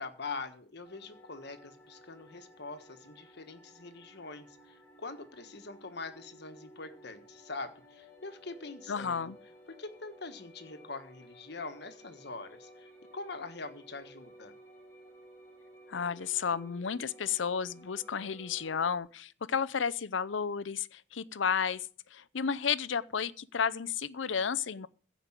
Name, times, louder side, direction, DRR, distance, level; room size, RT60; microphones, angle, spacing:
voice 1, 0.0-9.3 9.8-14.5, left 3 dB, 60° left, 1.4 m, -43 dB
sound 1, 0.8-19.0, right 1 dB, 15° left, 2.7 m, -56 dB
voice 2, 8.9-9.4 15.9-24.9, left 6 dB, 80° left, 0.6 m, -32 dB
15.5 x 5.4 x 9.0 m
head